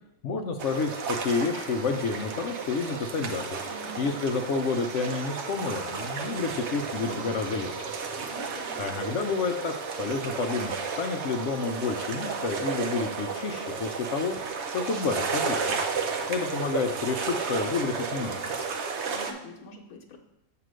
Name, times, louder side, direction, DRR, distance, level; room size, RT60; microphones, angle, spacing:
voice 1, 0.2-3.6 4.0-7.7 8.8-14.4 14.7-15.8 16.3-18.5, left 4 dB, 65° left, 5 dB, 0.8 m, -30 dB
sound 1, 0.6-19.3, right 5 dB, 60° right, 0.9 m, -33 dB
voice 2, 3.6-4.1 8.2-8.9 19.1-20.2, left 1 dB, 85° left, 2 dB, 1.2 m, -45 dB
7.7 x 2.9 x 6.1 m, 0.88 s
omnidirectional pair, 1.5 m